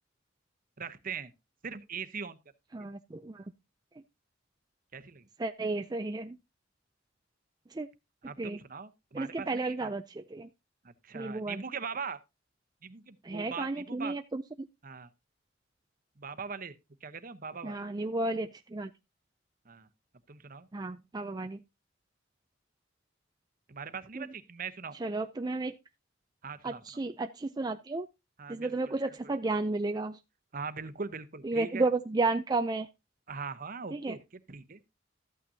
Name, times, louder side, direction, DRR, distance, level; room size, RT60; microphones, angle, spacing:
voice 1, 0.8-1.3 1.6-2.4 4.9-5.3 8.2-9.9 10.8-12.2 12.8-14.2 14.8-15.1 16.2-16.7 17.0-17.8 19.7-19.9 20.3-20.7 23.7-25.0 26.4-26.8 28.4-29.4 30.5-31.9 33.3-34.2 34.5-34.8, right 5 dB, 45° right, 0.9 m, -41 dB
voice 2, 2.7-3.4 5.4-6.4 7.7-7.9 8.4-8.6 9.1-10.5 11.1-11.6 13.2-14.4 17.6-18.9 20.7-21.6 24.1-24.3 25.0-25.7 26.6-28.1 28.5-30.2 31.4-32.9 33.9-34.2, right 2 dB, 20° right, 0.4 m, -32 dB
13.5 x 8.8 x 2.8 m
head